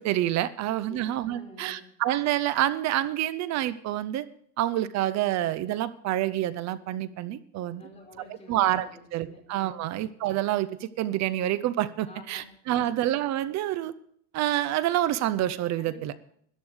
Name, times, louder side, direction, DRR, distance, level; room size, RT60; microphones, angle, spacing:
voice 1, 0.0-4.3 4.6-7.8 8.5-13.9 14.3-16.1, right 13 dB, 35° right, 17 dB, 0.6 m, -27 dB
voice 2, 0.8-1.9 7.7-9.4 9.7-10.0 12.0-13.0 15.8-16.0, left 2 dB, 15° left, -1 dB, 4.7 m, -50 dB
13.5 x 11.5 x 4.9 m, 0.64 s
supercardioid pair, 135°, 49 cm